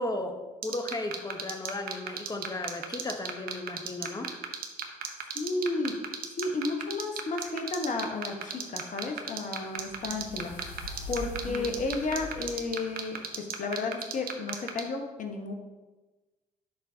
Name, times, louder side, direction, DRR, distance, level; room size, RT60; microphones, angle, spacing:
voice 1, 0.0-4.3 11.4-11.9, left 2 dB, 20° left, 6 dB, 1.0 m, -35 dB
sound 1, 0.6-14.8, right 9 dB, 55° right, 0.9 m, -33 dB
voice 2, 5.3-5.9 6.4-15.5, left 3 dB, 45° left, 3 dB, 1.3 m, -33 dB
sound 2, 8.4-13.6, left 1 dB, 80° left, 0.8 m, -44 dB
11.0 x 3.9 x 2.8 m, 1.2 s
hypercardioid pair, 55°, 18 cm